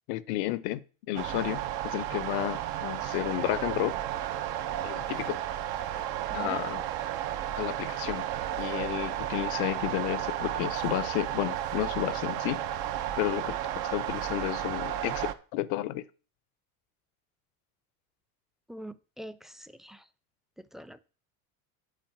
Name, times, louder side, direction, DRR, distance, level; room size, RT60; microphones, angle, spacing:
voice 1, 0.1-4.0 4.8-5.4 6.3-6.8 7.6-8.3 8.6-12.6 13.2-13.6 13.9-16.0, left 15 dB, 65° left, 0.9 m, -32 dB
sound 1, 1.2-15.3, right 11 dB, 60° right, 1.1 m, -33 dB
voice 2, 18.7-20.1 20.6-21.0, right 1 dB, ahead, 0.7 m, -45 dB
9.4 x 4.1 x 7.3 m
hypercardioid pair, 85°, 43 cm